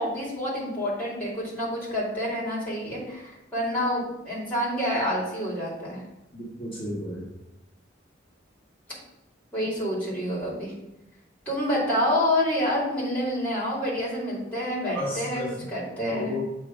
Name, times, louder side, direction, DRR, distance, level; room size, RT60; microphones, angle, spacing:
voice 1, 0.0-6.0 9.5-10.7 11.5-15.4 15.7-16.4, left 1 dB, 10° left, -7 dB, 2.4 m, -28 dB
voice 2, 6.3-7.3 14.9-15.5 16.0-16.4, left 1 dB, 30° left, -7 dB, 1.7 m, -33 dB
7.6 x 3.2 x 4.9 m, 0.90 s
head